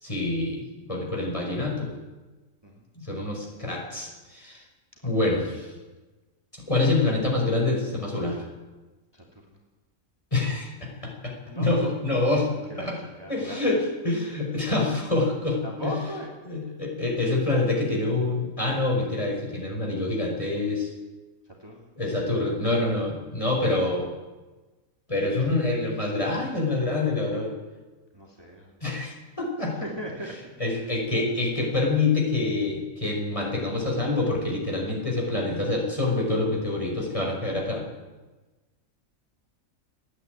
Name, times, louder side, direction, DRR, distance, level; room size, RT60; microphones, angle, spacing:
voice 1, 0.0-1.9 3.0-4.6 5.0-5.7 6.5-8.5 10.3-12.5 12.8-13.0 13.3-16.0 16.5-20.9 22.0-24.1 25.1-27.5 28.8-29.8 30.6-37.8, left 2 dB, 25° left, -1 dB, 5.4 m, -26 dB
voice 2, 9.1-9.6 11.5-11.7 12.7-13.7 15.6-16.3 21.6-21.9 28.1-28.7 29.7-30.5 30.8-30.9, equal, 15° right, -1 dB, 2.9 m, -38 dB
30.0 x 10.0 x 9.4 m, 1.2 s
omnidirectional pair, 1.5 m